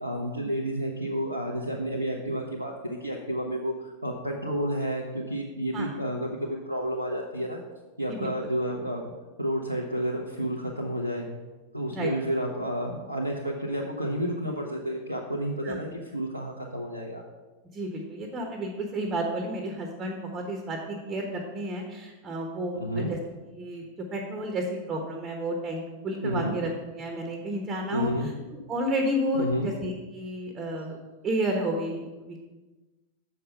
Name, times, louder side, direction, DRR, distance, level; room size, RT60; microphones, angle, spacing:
voice 1, 0.0-7.6 8.0-9.0 9.4-11.3 11.7-17.2 22.8-23.1 26.2-26.5 27.9-28.3 29.4-29.7, equal, 90° right, -2 dB, 0.9 m, -30 dB
voice 2, 8.1-8.5 11.9-12.1 15.6-15.8 17.7-23.2 23.6-28.3 28.7-31.0 31.2-32.4, right 1 dB, 25° right, 2 dB, 1.1 m, -31 dB
7.1 x 5.7 x 5.6 m, 1.2 s
figure-of-eight pair, 90°, 0 cm